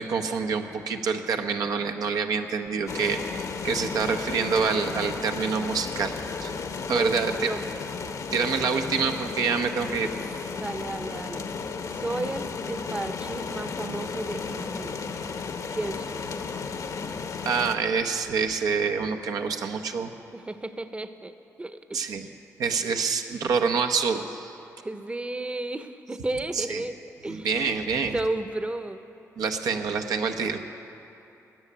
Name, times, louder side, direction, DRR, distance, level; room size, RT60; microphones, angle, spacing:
voice 1, 0.0-6.1 6.4-6.5 6.9-7.5 8.3-10.1 17.4-20.1 21.9-22.3 22.6-24.5 26.5-26.8 27.3-28.1 29.4-30.6, right 5 dB, 85° right, 5 dB, 0.8 m, -27 dB
sound 1, 2.9-17.8, left 5 dB, 65° left, 0.8 m, -34 dB
voice 2, 6.9-7.6 10.5-11.5 11.9-15.0 15.7-16.2 20.3-21.3 21.6-22.3 24.8-27.0 27.2-27.8 28.1-29.0, right 2 dB, 20° right, 10 dB, 0.7 m, -33 dB
13.5 x 7.4 x 9.9 m, 2.8 s
cardioid pair, 65°, 6 cm